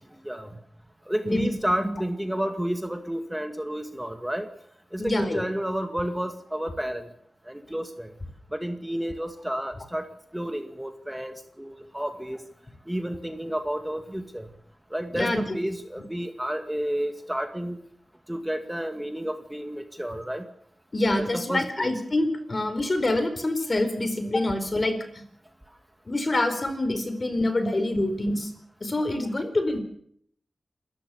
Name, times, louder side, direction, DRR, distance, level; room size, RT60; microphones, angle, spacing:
voice 1, 1.1-4.5 4.9-7.1 7.5-8.1 8.5-10.1 10.3-12.4 12.9-14.5 14.9-17.8 18.3-20.4 21.2-21.9, right 1 dB, 10° right, 7 dB, 2.1 m, -31 dB
voice 2, 5.0-5.4 15.1-15.6 20.9-25.0 26.1-28.5 28.8-29.8, left 1 dB, 40° left, 9 dB, 4.5 m, -26 dB
27.0 x 14.5 x 7.2 m, 0.67 s
cardioid pair, 60°, 0 cm